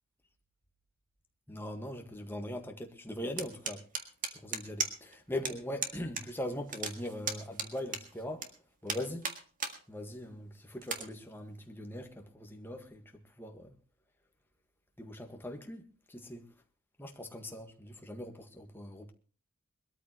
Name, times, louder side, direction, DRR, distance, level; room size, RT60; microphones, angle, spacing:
voice 1, 1.5-3.8 4.3-8.5 8.8-9.3 9.9-13.0 13.4-13.7 15.0-16.4 17.0-19.1, left 1 dB, 10° left, 1.7 m, -41 dB
sound 1, 3.4-5.1 5.4-5.5 5.8-6.2 6.5-8.5 8.9-9.8 10.2-10.3 10.8-11.0, right 5 dB, 40° right, 1.8 m, -35 dB
22.0 x 13.5 x 3.1 m
head